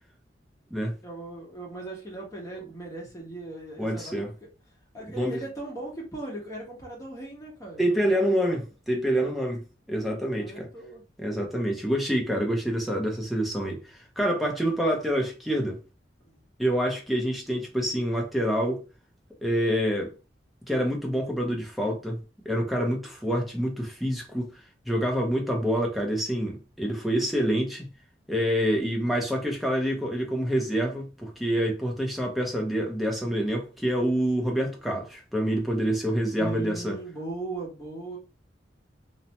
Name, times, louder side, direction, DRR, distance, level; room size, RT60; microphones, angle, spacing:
voice 1, 1.0-4.2 4.9-8.6 10.3-11.0 16.2-16.4 36.3-38.2, right 2 dB, 20° left, 1.0 m, -38 dB
voice 2, 3.8-4.3 5.1-5.4 7.8-10.7 11.2-15.8 16.6-18.8 19.4-20.1 20.7-22.2 22.4-24.5 24.9-27.9 28.3-37.0, equal, ahead, 0.6 m, -27 dB
2.7 x 2.1 x 2.8 m
head